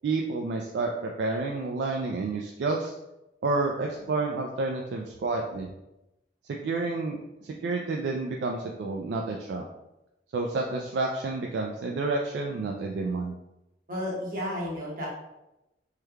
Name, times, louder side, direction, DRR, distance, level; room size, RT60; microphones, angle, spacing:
voice 1, 0.0-2.9 3.4-5.7 6.5-7.2 7.4-9.6 10.3-13.3, right 3 dB, 75° right, 1 dB, 0.3 m, -29 dB
voice 2, 13.9-15.1, left 1 dB, 50° right, -5 dB, 1.0 m, -32 dB
3.2 x 2.1 x 3.4 m, 0.93 s
head